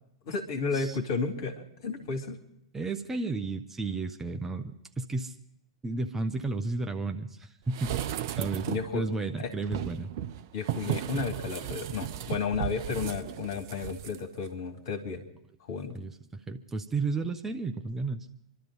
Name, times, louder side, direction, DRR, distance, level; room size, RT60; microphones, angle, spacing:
voice 1, 0.3-1.5 1.8-2.4 8.7-9.0 9.4-9.5 10.5-15.2 15.7-16.0, left 5 dB, 50° left, 5 dB, 2.3 m, -32 dB
voice 2, 2.7-5.3 5.8-8.0 8.4-8.7 8.9-10.1 15.9-18.3, right 3 dB, 10° right, 6 dB, 0.8 m, -33 dB
sound 1, 7.7-9.0 9.6-14.2 14.5-14.6, right 11 dB, 45° right, 0.6 m, -35 dB
27.0 x 12.5 x 3.9 m, 0.78 s
figure-of-eight pair, 100°, 3 cm